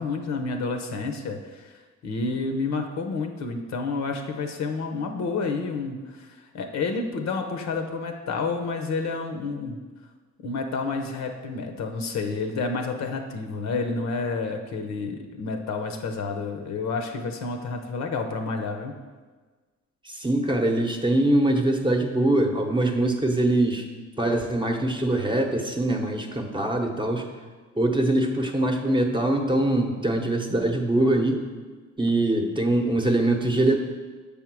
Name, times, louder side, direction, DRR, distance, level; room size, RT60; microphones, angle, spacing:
voice 1, 0.0-9.8 10.4-19.0, left 4 dB, 65° left, 5 dB, 0.8 m, -30 dB
voice 2, 20.0-23.8 24.2-27.2 27.7-31.4 32.0-33.8, right 1 dB, 15° right, 2 dB, 0.9 m, -23 dB
7.2 x 3.6 x 6.1 m, 1.4 s
cardioid pair, 90°, 30 cm